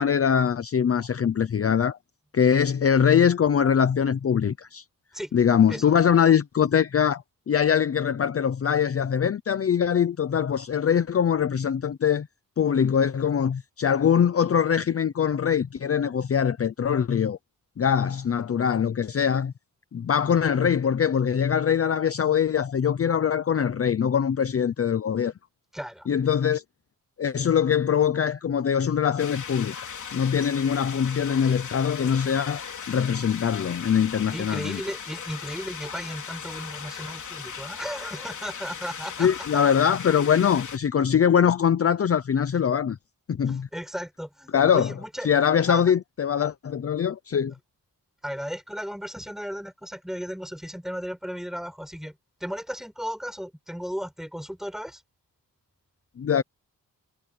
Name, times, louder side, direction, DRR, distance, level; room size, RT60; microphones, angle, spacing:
voice 1, 0.0-2.0 2.3-4.8 5.3-12.3 12.6-17.4 17.8-19.5 19.9-25.3 26.1-26.6 27.2-34.8 39.2-43.0 43.3-43.7 44.5-44.9 45.2-47.5 56.2-56.4, left 8 dB, 40° left, 0.7 m, -23 dB
voice 2, 25.7-26.1 34.3-39.3 43.5-45.3 45.7-45.9 48.2-55.0, equal, ahead, 7.4 m, -35 dB
sound 1, 29.2-40.8, left 7 dB, 60° left, 3.8 m, -38 dB
wide cardioid pair, 150°, 34 cm